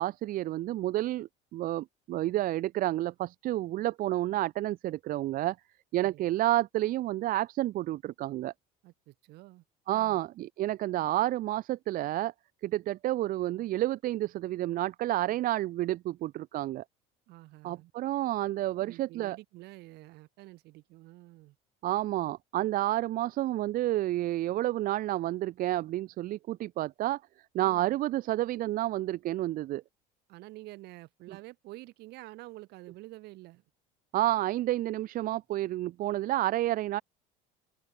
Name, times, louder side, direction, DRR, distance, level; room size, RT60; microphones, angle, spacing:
voice 1, 0.0-5.6 5.9-8.5 9.9-12.3 12.6-16.8 17.6-19.4 21.8-27.2 27.5-29.8 34.1-37.0, right 15 dB, 55° right, 0.7 m, -30 dB
voice 2, 8.8-10.2 17.3-17.9 18.8-21.6 27.6-27.9 30.3-33.6, right 19 dB, 70° right, 3.7 m, -49 dB
open air
supercardioid pair, 105°, 18 cm